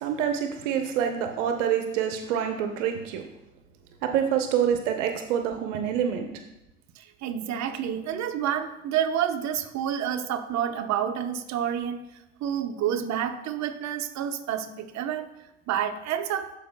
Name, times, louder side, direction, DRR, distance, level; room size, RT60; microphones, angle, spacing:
voice 1, 0.0-3.2 4.0-6.3, right 8 dB, 75° right, 5 dB, 0.8 m, -26 dB
voice 2, 7.0-12.0 12.4-15.3 15.7-16.5, right 9 dB, 50° right, 5 dB, 0.9 m, -29 dB
13.5 x 5.0 x 2.2 m, 0.87 s
hypercardioid pair, 80°, 37 cm